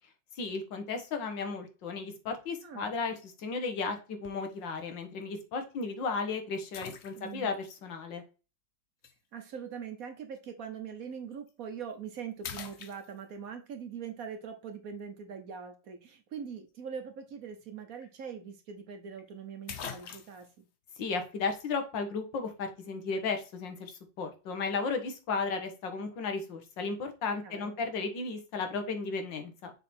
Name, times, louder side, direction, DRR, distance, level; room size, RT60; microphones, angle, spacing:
voice 1, 0.4-8.2 21.0-29.7, left 4 dB, 80° left, 6 dB, 1.9 m, -34 dB
voice 2, 2.6-2.9 7.2-7.5 9.3-20.7 27.4-27.8, right 7 dB, 60° right, 6 dB, 1.1 m, -42 dB
sound 1, 4.2-4.6 5.2-5.3 6.7-7.6 9.0-9.2 11.3-11.5 11.9-12.1 12.4-13.5 17.6-17.7 18.0-18.1 19.2-19.3 19.7-20.5, left 7 dB, 60° left, 0.7 m, -44 dB
6.7 x 3.6 x 4.3 m, 0.32 s
omnidirectional pair, 2.0 m